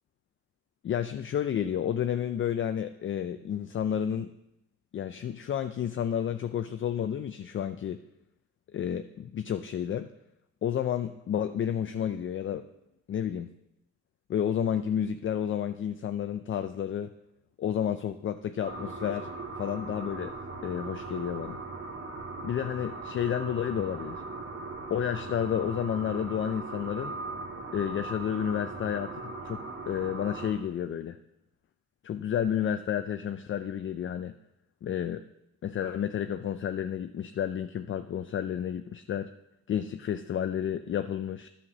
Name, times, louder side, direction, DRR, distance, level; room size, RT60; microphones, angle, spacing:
voice 1, 0.8-4.3 4.9-8.0 8.7-10.1 10.6-12.7 13.1-13.5 14.3-17.1 17.6-19.3 19.6-20.3 20.6-21.6 22.4-24.2 24.9-27.2 27.7-31.2 32.0-34.3 34.8-35.2 35.6-39.3 39.7-41.5, left 9 dB, 40° left, 9 dB, 0.5 m, -31 dB
sound 1, 18.6-30.5, right 3 dB, 45° right, 1.8 m, -39 dB
9.9 x 5.8 x 6.1 m, 0.87 s
cardioid pair, 90°, 30 cm